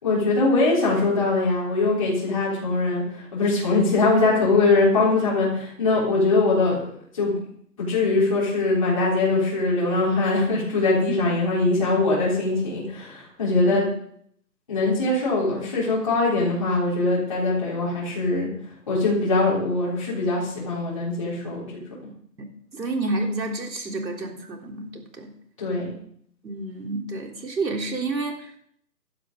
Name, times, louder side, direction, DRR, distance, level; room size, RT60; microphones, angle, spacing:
voice 1, 0.0-7.4 7.8-13.9 14.7-21.8 25.6-25.9, left 3 dB, 20° left, -7 dB, 3.8 m, -22 dB
voice 2, 22.7-25.3 26.4-28.6, right 2 dB, 85° right, 2 dB, 3.6 m, -29 dB
16.0 x 12.5 x 3.8 m, 0.64 s
hypercardioid pair, 180°, 50 cm